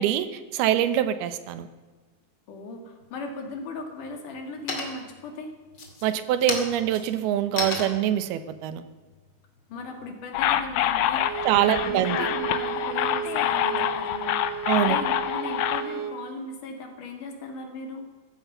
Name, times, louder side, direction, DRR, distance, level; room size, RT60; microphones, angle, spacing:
voice 1, 0.0-1.7 6.0-8.8 11.5-12.3 14.7-15.0, right 11 dB, 85° right, 12 dB, 2.9 m, -24 dB
voice 2, 2.5-5.5 9.7-18.1, left 3 dB, 60° left, 4 dB, 3.3 m, -38 dB
sound 1, 3.0-3.6 4.0-4.4 4.7-5.2 5.7-10.1, left 3 dB, 35° left, 2.5 m, -34 dB
sound 2, 10.3-15.8, left 12 dB, 75° left, 2.3 m, -26 dB
Bowed string instrument, 11.2-16.2, right 9 dB, 65° right, 2.7 m, -33 dB
16.0 x 14.0 x 5.5 m, 1.4 s
omnidirectional pair, 4.4 m